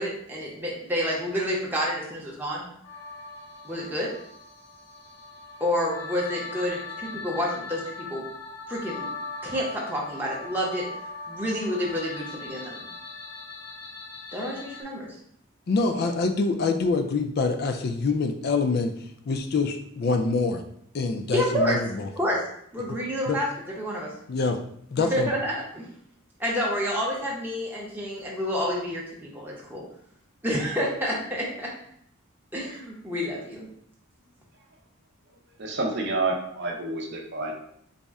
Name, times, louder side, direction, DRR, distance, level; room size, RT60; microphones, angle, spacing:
voice 1, 0.0-2.7 3.6-4.1 5.6-8.2 8.7-9.1 9.4-10.8 11.3-12.8 14.3-15.1 21.3-21.8 22.2-22.4 22.7-23.5 23.8-24.1 25.0-25.9 26.4-29.8 30.4-31.7 32.5-33.7, equal, 10° right, -4 dB, 0.6 m, -29 dB
sound 1, 2.8-14.8, left 3 dB, 65° left, 0.7 m, -40 dB
voice 2, 15.7-20.6 20.9-22.1 23.3-23.4 24.3-24.6 24.9-25.3, left 3 dB, 45° left, 7 dB, 0.3 m, -25 dB
voice 3, 35.6-37.5, right 3 dB, 50° right, 0 dB, 0.6 m, -28 dB
4.1 x 2.1 x 3.5 m, 0.68 s
head